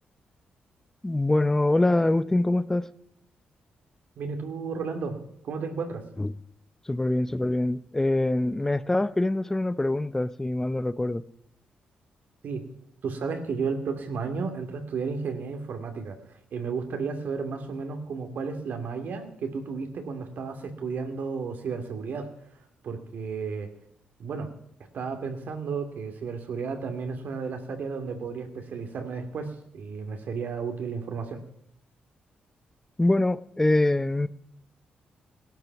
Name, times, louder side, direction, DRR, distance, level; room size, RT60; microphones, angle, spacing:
voice 1, 1.0-2.9 6.2-6.3 6.9-11.2 33.0-34.3, left 2 dB, 15° left, 16 dB, 0.6 m, -24 dB
voice 2, 4.2-5.2 5.4-6.0 12.4-12.6 13.0-16.2 16.5-22.3 22.8-23.7 24.2-24.5 24.9-31.4, right 5 dB, 70° right, 5 dB, 2.5 m, -33 dB
18.0 x 12.0 x 6.0 m, 0.74 s
cardioid pair, 95°, 3 cm